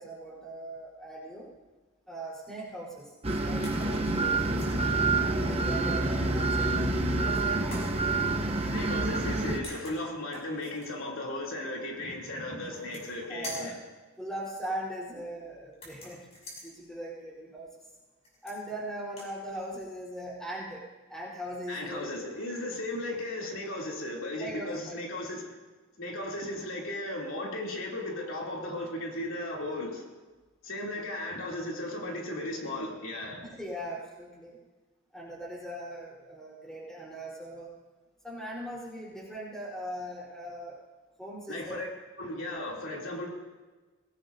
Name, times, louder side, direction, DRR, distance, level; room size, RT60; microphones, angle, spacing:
voice 1, 0.0-1.5 2.1-3.1 3.4-4.8 5.2-6.9 7.1-7.9 8.2-8.6 13.3-13.8 14.2-16.3 16.6-17.7 18.4-22.3 24.4-25.0 33.4-34.6 35.1-37.7 38.2-40.8 41.2-41.8, right 1 dB, 5° left, -6 dB, 3.9 m, -40 dB
sound 1, 3.2-9.6, right 2 dB, 30° right, 0.8 m, -27 dB
sound 2, 3.6-4.0 4.4-4.8 6.5-7.1 7.7-7.9 9.3-9.4 9.6-10.9 12.6-13.2 13.4-13.8 15.7-16.7 18.2-18.8 19.1-19.3, left 1 dB, 30° left, 6.5 m, -45 dB
voice 2, 8.7-13.7 21.7-25.5 26.0-30.0 30.6-33.5 41.5-41.9 42.2-43.3, left 1 dB, 75° left, -2 dB, 2.9 m, -36 dB
23.0 x 18.0 x 2.7 m, 1.3 s
head